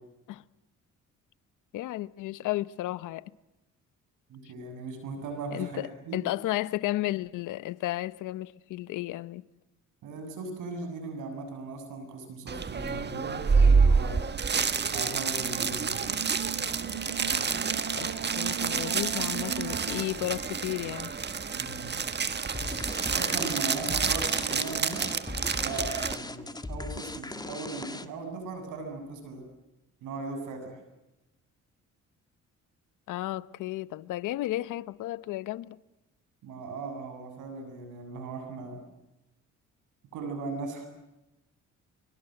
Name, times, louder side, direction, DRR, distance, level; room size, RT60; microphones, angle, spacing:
voice 1, 1.7-3.3 5.5-9.4 17.9-21.1 33.1-35.8, left 16 dB, 90° left, 0.9 m, -33 dB
voice 2, 4.3-6.2 10.0-14.2 14.9-16.4 21.5-21.9 23.1-25.1 25.5-29.4 30.0-30.8 36.4-38.8 40.1-40.9, right 3 dB, 90° right, 7.7 m, -38 dB
sound 1, 12.5-26.2, right 5 dB, 35° right, 1.6 m, -28 dB
sound 2, 12.9-20.0, right 10 dB, 60° right, 2.0 m, -40 dB
sound 3, 22.5-28.3, left 2 dB, 15° left, 1.7 m, -38 dB
25.0 x 24.5 x 7.8 m
cardioid pair, 90°, 30 cm